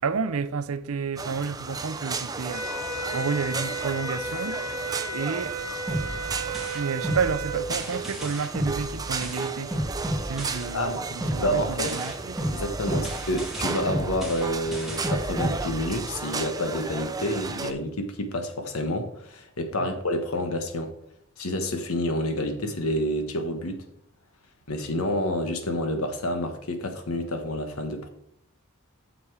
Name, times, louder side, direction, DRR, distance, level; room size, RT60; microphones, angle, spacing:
voice 1, 0.0-2.7 3.1-4.6 5.1-5.6 6.7-9.7 10.2-12.4 12.9-13.1 19.8-19.9, right 5 dB, 85° right, 0.6 m, -30 dB
sound 1, 1.2-17.7, right 4 dB, 15° right, 0.6 m, -34 dB
sound 2, 2.5-7.6, right 2 dB, 35° right, 1.5 m, -33 dB
sound 3, 5.9-10.9 11.2-16.2, right 1 dB, ahead, 1.8 m, -33 dB
voice 2, 10.7-11.0 11.4-12.0 12.5-20.9 21.4-23.8 24.7-28.1, left 1 dB, 85° left, 1.3 m, -29 dB
7.8 x 6.8 x 4.8 m
head